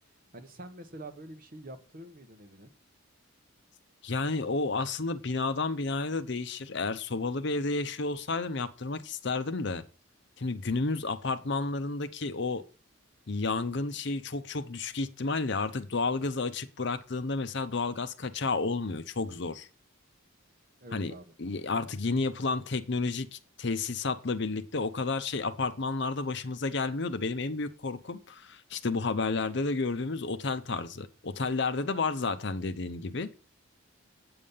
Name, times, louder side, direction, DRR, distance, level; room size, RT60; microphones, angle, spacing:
voice 1, 0.3-2.7 20.8-21.3, right 1 dB, 40° right, 1.2 m, -46 dB
voice 2, 4.0-9.8 10.4-12.6 13.3-19.7 20.9-21.1 21.4-33.3, left 3 dB, 55° left, 0.7 m, -31 dB
8.7 x 7.0 x 5.5 m
head